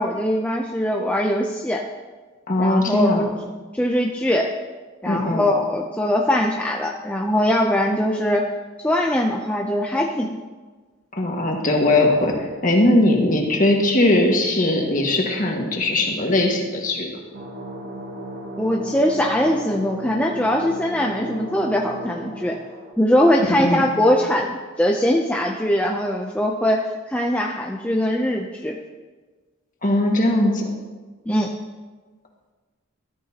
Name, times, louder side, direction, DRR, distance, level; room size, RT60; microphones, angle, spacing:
voice 1, 0.0-1.8 2.6-3.3 3.7-4.5 5.0-8.4 8.8-10.4 18.6-22.6 23.0-28.8 31.3-31.5, left 1 dB, 5° left, 0 dB, 0.5 m, -21 dB
voice 2, 2.5-3.2 5.0-5.5 11.2-17.1 23.5-23.9 29.8-30.6, left 1 dB, 40° left, 0 dB, 1.8 m, -19 dB
sound 1, 17.3-22.9, right 1 dB, 55° right, 2.1 m, -35 dB
13.5 x 13.0 x 2.9 m, 1.3 s
head